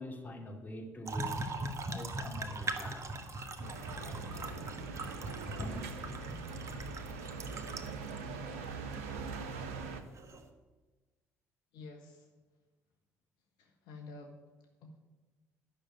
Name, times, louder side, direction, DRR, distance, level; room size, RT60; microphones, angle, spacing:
voice 1, 0.0-1.5 1.9-3.5 4.0-4.6 5.6-5.9, left 1 dB, 20° left, 2 dB, 2.4 m, -44 dB
sound 1, 1.1-8.2 8.9-9.0 10.2-10.4, right 2 dB, 40° right, 1.5 m, -40 dB
sound 2, 3.6-10.0, right 4 dB, 70° right, 0.8 m, -42 dB
voice 2, 11.7-12.3 13.6-15.0, left 3 dB, 60° left, 2 dB, 1.3 m, -50 dB
11.0 x 6.6 x 8.9 m, 1.2 s
figure-of-eight pair, 50°, 8 cm